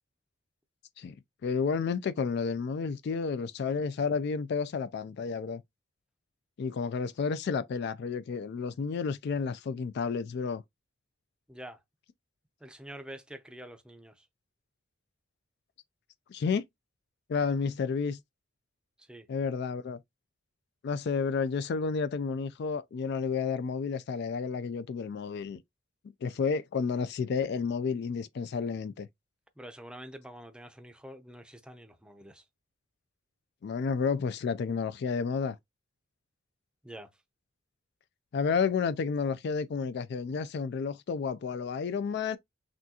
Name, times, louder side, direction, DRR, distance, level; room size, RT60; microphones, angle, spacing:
voice 1, 1.4-5.6 6.6-10.6 16.3-16.6 17.3-18.2 19.3-20.0 20.8-25.6 26.2-29.1 33.6-35.6 38.3-42.4, left 5 dB, 55° left, 0.3 m, -31 dB
voice 2, 11.5-11.8 12.6-14.3 19.0-19.3 29.6-32.4 36.8-37.1, right 1 dB, 5° right, 0.6 m, -46 dB
6.0 x 2.3 x 2.8 m
head